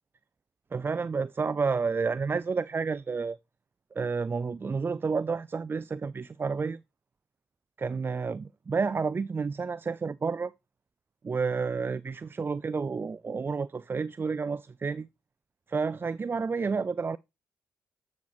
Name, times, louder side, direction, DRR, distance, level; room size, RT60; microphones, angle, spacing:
voice 1, 0.7-3.4 3.9-6.8 7.8-10.5 11.2-15.1 15.7-17.2, right 5 dB, 30° right, 0.3 m, -30 dB
8.3 x 6.4 x 3.1 m
supercardioid pair, 50°, 7 cm